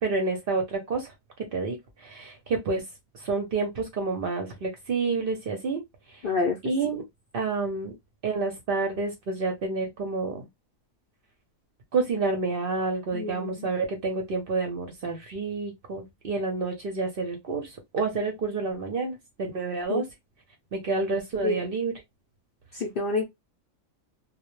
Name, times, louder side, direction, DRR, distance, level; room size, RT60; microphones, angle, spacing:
voice 1, 0.0-1.1 1.5-2.8 3.1-5.8 6.1-6.2 6.6-7.0 7.3-7.9 8.2-10.5 11.9-20.0 20.7-21.9, right 3 dB, 55° right, 0.7 m, -29 dB
voice 2, 6.2-6.6 13.1-13.7 19.9-20.0 21.4-21.6 22.7-23.2, left 3 dB, 60° left, 0.6 m, -27 dB
2.2 x 2.1 x 3.0 m
omnidirectional pair, 1.4 m